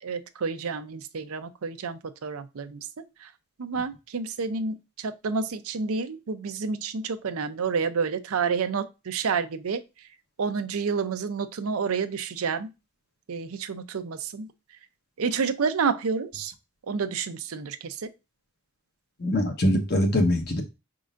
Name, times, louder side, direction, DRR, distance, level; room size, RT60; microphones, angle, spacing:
voice 1, 0.0-3.3 3.6-9.8 10.4-12.7 13.3-14.5 15.2-16.5 16.9-18.1, right 5 dB, 85° right, 0.5 m, -29 dB
voice 2, 19.2-20.6, left 1 dB, 45° left, 1.1 m, -23 dB
5.2 x 3.7 x 2.5 m
head